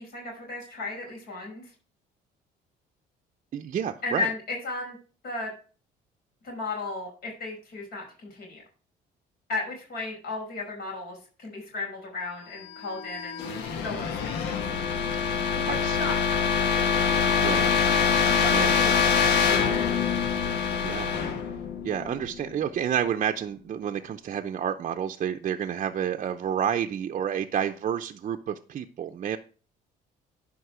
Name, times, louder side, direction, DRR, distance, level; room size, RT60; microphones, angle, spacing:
voice 1, 0.0-1.7 4.0-5.0 5.2-5.5 6.4-8.6 9.5-13.4 13.8-14.3 15.6-16.6 18.4-19.9, left 3 dB, 65° left, -1 dB, 5.2 m, -35 dB
voice 2, 3.5-4.3 15.3-16.1 17.4-17.7 18.5-18.9 20.4-21.2 21.8-29.4, right 9 dB, 45° right, 5 dB, 0.6 m, -30 dB
sound 1, 12.7-22.5, left 6 dB, 85° left, 1.4 m, -25 dB
11.0 x 5.2 x 4.9 m, 0.38 s
cardioid pair, 110°, 17 cm